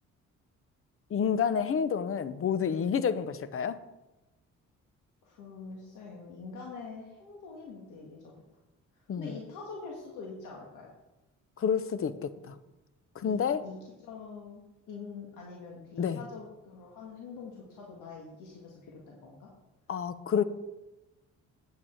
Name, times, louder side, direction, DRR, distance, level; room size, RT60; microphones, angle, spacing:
voice 1, 1.1-3.8 9.1-9.3 11.6-12.5 13.2-13.6 16.0-16.2 19.9-20.4, left 7 dB, 45° left, 0.7 m, -29 dB
voice 2, 5.2-8.3 8.9-10.9 12.4-12.6 13.2-14.6 14.9-19.5, left 4 dB, 90° left, 1.7 m, -45 dB
8.7 x 8.4 x 4.4 m
cardioid pair, 90°, 30 cm